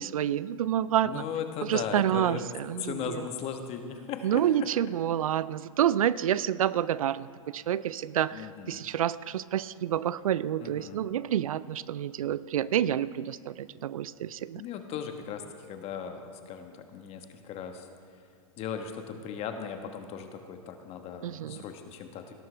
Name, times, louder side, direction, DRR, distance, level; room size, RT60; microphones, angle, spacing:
voice 1, 0.0-1.2 1.7-3.0 4.2-14.6 21.2-21.6, right 11 dB, 80° right, 18 dB, 0.4 m, -28 dB
voice 2, 1.0-2.5 2.8-4.7 8.3-8.9 10.6-11.0 14.5-17.9 18.6-22.3, left 7 dB, 35° left, 6 dB, 1.3 m, -37 dB
18.5 x 11.0 x 3.3 m, 2.5 s
hypercardioid pair, 115°, 18 cm